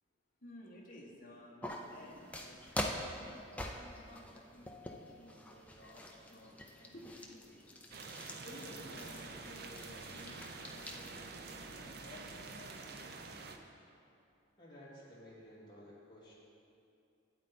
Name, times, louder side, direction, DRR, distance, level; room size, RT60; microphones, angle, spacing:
voice 1, 0.4-7.8 8.3-11.2 11.4-12.8, left 1 dB, 45° left, -2 dB, 1.4 m, -55 dB
sound 1, 1.6-11.1, left 1 dB, 5° left, 0.5 m, -45 dB
sound 2, 7.9-13.6, right 3 dB, 50° right, 0.6 m, -47 dB
voice 2, 14.6-16.3, equal, 20° left, -8 dB, 2.4 m, -54 dB
12.0 x 8.9 x 4.2 m, 2.6 s
head